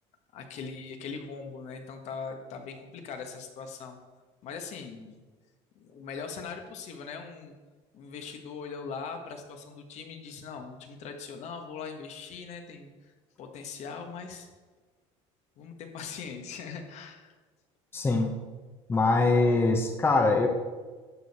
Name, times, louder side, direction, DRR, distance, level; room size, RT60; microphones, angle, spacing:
voice 1, 0.3-4.0 4.4-5.2 5.8-7.5 7.9-13.1 13.4-14.5 15.6-17.3, left 5 dB, 60° left, 5 dB, 1.5 m, -40 dB
voice 2, 17.9-18.3 18.9-20.5, left 3 dB, 15° left, 3 dB, 1.0 m, -23 dB
11.5 x 6.6 x 4.3 m, 1.3 s
cardioid pair, 120°, 13 cm